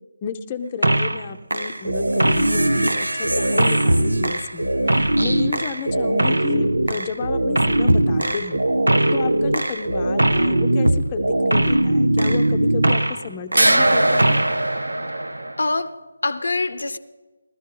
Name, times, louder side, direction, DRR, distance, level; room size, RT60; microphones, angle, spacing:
voice 1, 0.2-8.6 9.1-14.4, left 6 dB, 25° left, 0.6 m, -32 dB
sound 1, 0.8-1.2 1.5-13.3 13.5-15.7, right 1 dB, 85° right, 0.6 m, -20 dB
voice 2, 15.6-17.0, left 3 dB, 70° left, 0.6 m, -25 dB
16.0 x 12.5 x 3.8 m
figure-of-eight pair, 155°, 0 cm